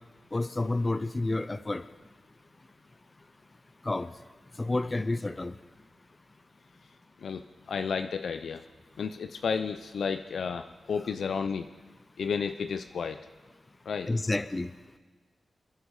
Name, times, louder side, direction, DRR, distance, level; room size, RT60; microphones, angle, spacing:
voice 1, 0.3-1.8 3.8-4.1 4.6-5.5 14.1-14.7, left 2 dB, 25° left, 12 dB, 0.6 m, -29 dB
voice 2, 7.2-8.6 9.0-11.7 12.2-13.3 13.9-14.1, left 6 dB, 80° left, 9 dB, 0.6 m, -32 dB
26.5 x 11.0 x 4.8 m, 1.4 s
wide cardioid pair, 90°, 0 cm